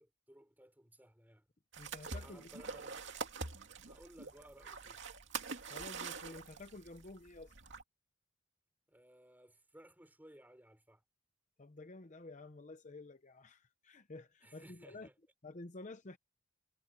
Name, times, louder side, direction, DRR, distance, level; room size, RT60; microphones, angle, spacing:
voice 1, 0.0-1.5 2.1-3.1 3.9-5.0 8.9-11.0 14.4-15.1, right 1 dB, 10° right, 3.9 m, -59 dB
sound 1, 1.7-7.8, right 4 dB, 60° right, 2.6 m, -45 dB
voice 2, 1.8-2.5 5.7-7.5 11.6-15.1 15.4-16.2, left 2 dB, 35° left, 0.8 m, -51 dB
head